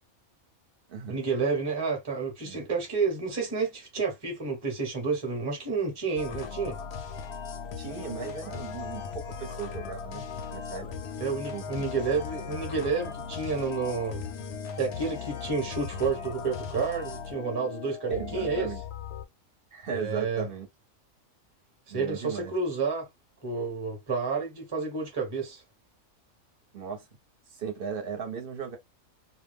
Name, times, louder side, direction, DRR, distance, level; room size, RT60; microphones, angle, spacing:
voice 1, 1.1-6.8 11.2-14.2 14.8-18.7 19.9-20.5 21.9-23.1 23.4-25.6, right 4 dB, 20° right, 0.9 m, -30 dB
sound 1, 6.2-19.2, left 6 dB, 60° left, 0.7 m, -38 dB
voice 2, 7.8-10.2 10.5-10.9 11.5-11.6 18.1-18.8 19.7-20.7 21.9-22.5 26.7-27.0 27.5-28.8, right 6 dB, 50° right, 0.9 m, -36 dB
2.5 x 2.1 x 3.4 m
omnidirectional pair, 1.4 m